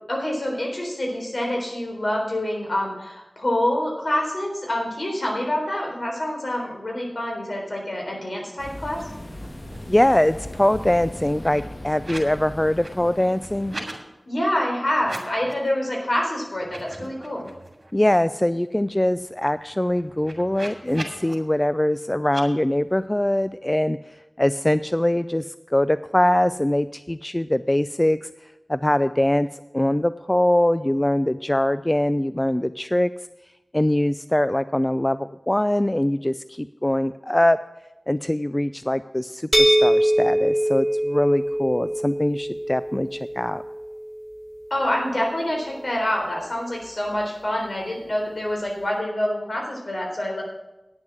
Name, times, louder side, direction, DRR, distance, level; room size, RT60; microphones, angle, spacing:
voice 1, 0.1-9.0 14.3-17.5 44.7-50.4, left 1 dB, 65° left, -1 dB, 3.8 m, -26 dB
sound 1, 8.6-13.8, left 1 dB, 45° left, 1.4 m, -38 dB
sound 2, 8.9-9.0 9.3-10.0 10.3-12.4 12.7-14.0 14.9-15.7 16.1-16.2 16.6-17.9 18.3-18.4 18.7-21.3 22.2-22.4, right 2 dB, 55° right, 2.4 m, -40 dB
voice 2, 9.9-13.7 17.9-24.0 24.4-28.3 28.7-29.5 29.7-33.1 33.7-37.6 38.1-43.6, left 1 dB, 20° left, 14 dB, 0.3 m, -22 dB
sound 3, 39.5-45.3, right 1 dB, 10° right, 1.0 m, -23 dB
9.8 x 7.2 x 7.8 m, 0.99 s
wide cardioid pair, 50°, 0 cm